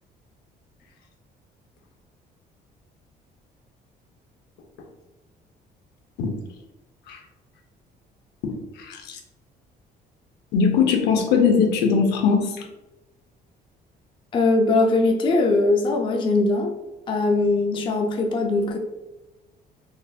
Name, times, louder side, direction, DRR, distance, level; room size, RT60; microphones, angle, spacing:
voice 1, 10.5-12.5, left 6 dB, 85° left, 3 dB, 0.6 m, -20 dB
voice 2, 14.3-16.7 17.1-18.8, left 2 dB, 30° left, 2 dB, 0.4 m, -21 dB
3.9 x 2.5 x 2.2 m, 1.0 s
cardioid pair, 145°, 17 cm